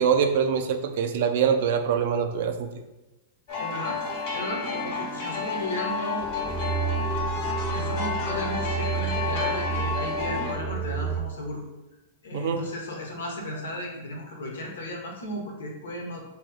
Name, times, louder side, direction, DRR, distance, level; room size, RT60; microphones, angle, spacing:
voice 1, 0.0-2.7 12.3-12.7, right 7 dB, 65° right, 7 dB, 0.4 m, -24 dB
sound 1, 3.5-10.5, left 4 dB, 55° left, 1.0 m, -30 dB
voice 2, 3.6-4.0 4.3-6.2 7.7-11.6 12.2-16.2, left 1 dB, 80° left, -1 dB, 1.1 m, -35 dB
sound 2, 6.2-11.2, right 6 dB, 10° left, 0.6 m, -30 dB
3.1 x 2.9 x 3.8 m, 1.0 s
hypercardioid pair, 115°, 0 cm